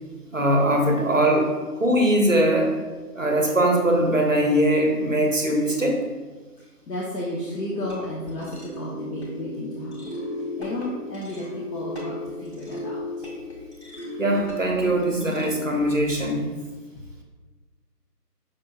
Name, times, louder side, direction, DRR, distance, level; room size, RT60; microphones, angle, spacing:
voice 1, 0.3-2.7 3.1-6.0 14.2-16.5, right 1 dB, 55° right, 1 dB, 0.5 m, -21 dB
voice 2, 6.6-13.0, left 1 dB, 80° left, -5 dB, 0.8 m, -33 dB
sound 1, 7.3-15.9, left 1 dB, 45° left, 0.6 m, -36 dB
5.2 x 2.3 x 2.6 m, 1.3 s
figure-of-eight pair, 175°, 48 cm